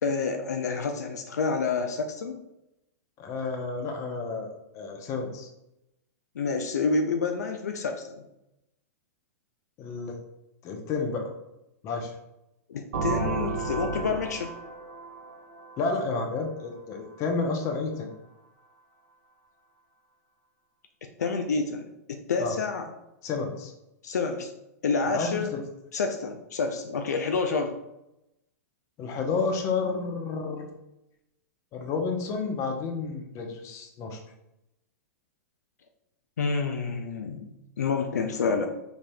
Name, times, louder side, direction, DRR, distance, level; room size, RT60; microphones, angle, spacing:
voice 1, 0.0-2.4 6.4-8.2 12.7-14.5 21.0-22.9 24.0-24.5 24.8-25.5 25.9-27.8 36.4-38.7, left 4 dB, 75° left, 5 dB, 0.4 m, -28 dB
voice 2, 3.2-5.5 9.8-10.2 10.6-11.3 11.8-12.1 15.8-18.1 22.4-22.5 23.2-23.7 25.1-25.6 29.0-30.8 31.7-34.2, left 4 dB, 35° left, 3 dB, 0.7 m, -31 dB
sound 1, 12.9-16.6, right 4 dB, 65° right, 0.7 m, -33 dB
3.9 x 3.3 x 2.2 m, 0.89 s
hypercardioid pair, 110°, 9 cm